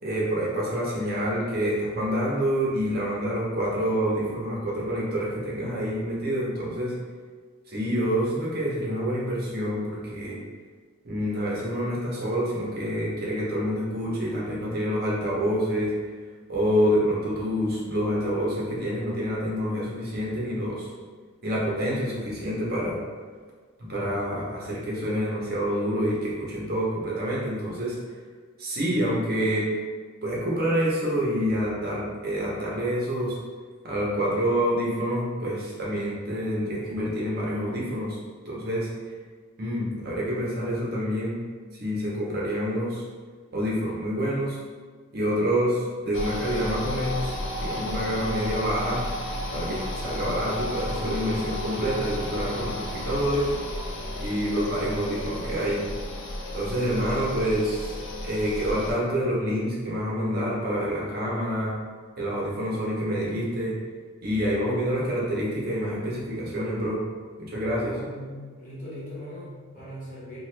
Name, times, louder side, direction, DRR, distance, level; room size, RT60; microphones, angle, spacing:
voice 1, 0.0-6.9 7.7-10.4 11.0-15.9 16.5-20.9 21.4-23.0 23.8-28.0 28.6-29.7 30.2-33.4 33.8-38.2 38.4-38.9 39.6-41.4 41.8-43.0 43.5-44.6 45.1-47.3 47.6-49.0 49.5-53.5 54.2-55.8 56.5-57.9 58.2-61.7 62.2-63.7 64.2-67.0 67.4-68.0, equal, 50° right, -5 dB, 0.8 m, -27 dB
sound 1, 46.1-58.9, left 1 dB, 60° left, 0.5 m, -33 dB
voice 2, 67.9-70.4, equal, 40° left, -9 dB, 1.1 m, -40 dB
2.9 x 2.3 x 3.2 m, 1.5 s
head